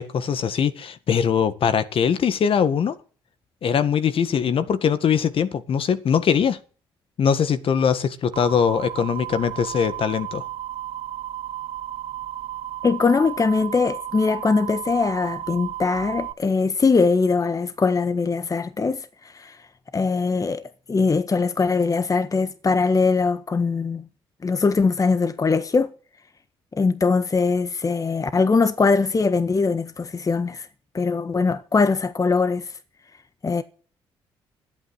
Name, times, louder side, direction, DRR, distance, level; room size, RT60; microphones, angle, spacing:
voice 1, 0.0-3.0 3.6-6.6 7.2-10.4, left 7 dB, 55° left, 1.8 m, -21 dB
sound 1, 8.3-16.3, right 12 dB, 60° right, 1.0 m, -33 dB
voice 2, 12.8-19.1 19.3-19.6 19.9-20.6 20.9-24.0 24.4-25.9 26.7-30.7 30.9-32.7 33.4-33.6, left 4 dB, 30° left, 1.4 m, -21 dB
13.5 x 8.9 x 10.0 m
supercardioid pair, 55°, 11 cm